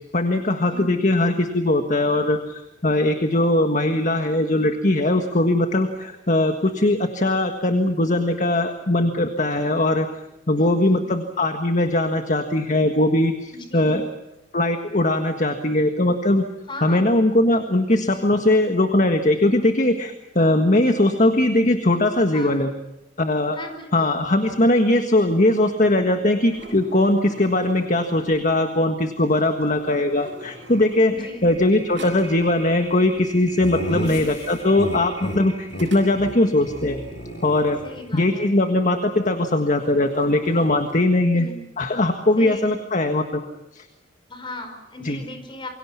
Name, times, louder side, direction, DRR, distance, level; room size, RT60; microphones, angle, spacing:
voice 1, 0.1-10.1 10.5-14.1 14.5-16.4 16.8-22.7 23.2-23.6 23.9-37.0 37.4-37.8 38.1-41.5 41.8-43.4 43.7-43.8 45.0-45.2, left 1 dB, 45° left, 6 dB, 1.6 m, -20 dB
voice 2, 10.6-11.0 13.5-14.0 16.7-17.0 22.3-22.6 23.5-24.1 31.1-31.5 33.8-34.3 37.8-38.5 41.3-41.6 42.4-42.8 44.3-45.7, left 1 dB, 30° left, 6 dB, 5.2 m, -37 dB
sound 1, 25.7-28.5 29.5-31.6 31.9-32.5 35.7-36.6 38.9-39.2 39.5-41.0, right 1 dB, 75° right, 7.8 m, -44 dB
sound 2, 29.2-39.4, right 1 dB, 15° right, 6.9 m, -44 dB
Laughter, 33.6-35.4 35.7-35.9 36.2-36.3 36.6-38.2, equal, 65° left, 4.1 m, -32 dB
28.0 x 24.0 x 5.9 m, 0.94 s
head